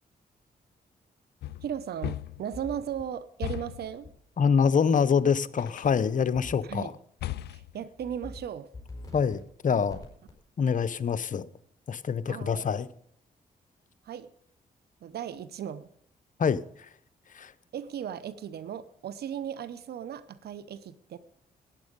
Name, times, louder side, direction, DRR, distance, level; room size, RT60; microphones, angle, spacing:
sound 1, 1.4-2.6 3.4-3.9 5.6-6.1 7.2-7.8, left 14 dB, 80° left, 0.4 m, -37 dB
voice 1, 1.6-4.1 6.6-6.9 7.5-8.7 12.3-12.7 14.0-14.3 15.0-15.9 17.7-21.2, right 9 dB, 75° right, 15 dB, 0.8 m, -36 dB
sound 2, 2.5-3.0 4.0-4.1 6.3-6.8 7.2-7.5 8.0-8.4 8.7-9.4 9.9-10.3, left 2 dB, 20° left, 5.4 m, -44 dB
voice 2, 4.4-6.9 9.1-10.0 10.6-11.5 11.9-12.9 16.4-16.6 17.3-17.5, left 6 dB, 50° left, 13 dB, 0.8 m, -25 dB
13.5 x 9.7 x 5.3 m, 0.68 s
cardioid pair, 65°, 17 cm